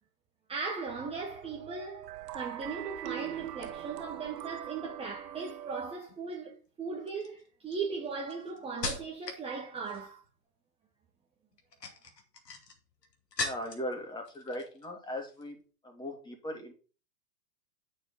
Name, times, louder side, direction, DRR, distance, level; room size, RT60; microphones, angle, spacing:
voice 1, 0.5-10.2, right 4 dB, 10° right, 1.2 m, -38 dB
sound 1, 0.9-6.0, right 13 dB, 85° right, 0.5 m, -42 dB
sound 2, 6.0-6.4 7.1-9.5 9.8-10.3 11.5-13.9 14.2-14.9 15.2-15.4, left 3 dB, 85° left, 2.5 m, -40 dB
voice 2, 13.4-15.6 15.8-16.7, left 1 dB, 10° left, 2.4 m, -39 dB
9.0 x 6.5 x 4.1 m
hypercardioid pair, 125°, 47 cm